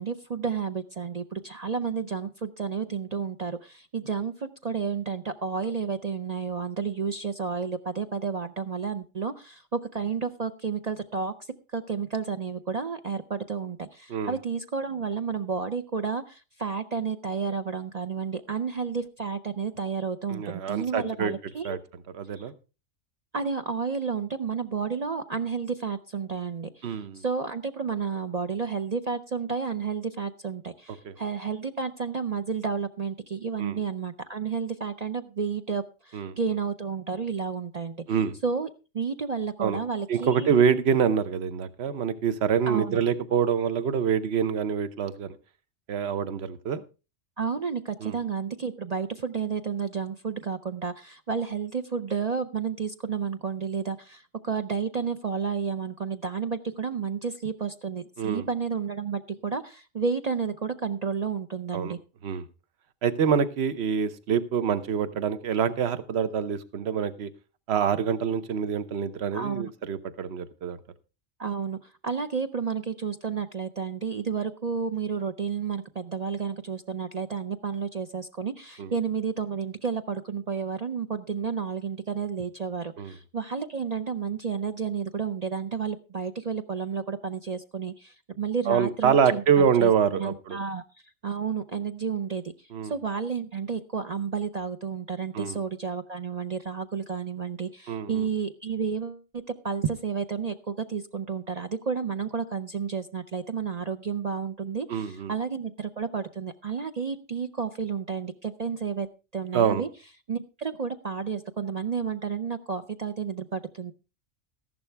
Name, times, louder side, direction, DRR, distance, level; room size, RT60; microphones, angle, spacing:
voice 1, 0.0-11.3 11.7-21.8 22.4-22.5 23.3-38.0 38.4-38.7 38.9-40.5 42.7-43.0 47.4-62.0 69.3-69.7 71.4-90.8 91.2-109.1 109.3-109.9 110.3-113.9, right 6 dB, 45° right, 0.6 m, -31 dB
voice 2, 20.3-21.3 21.6-21.8 22.1-22.5 26.8-27.2 33.6-33.8 36.1-36.4 38.1-38.3 39.6-39.8 40.1-45.3 45.9-46.8 48.0-48.1 58.2-58.4 61.7-62.0 62.2-62.4 63.0-67.3 67.7-70.8 78.8-78.9 83.0-83.1 88.7-90.6 92.7-92.9 95.3-95.6 97.9-98.3 104.9-105.3 109.5-109.8, right 7 dB, 60° right, 1.1 m, -26 dB
14.0 x 11.5 x 3.4 m
omnidirectional pair, 1.2 m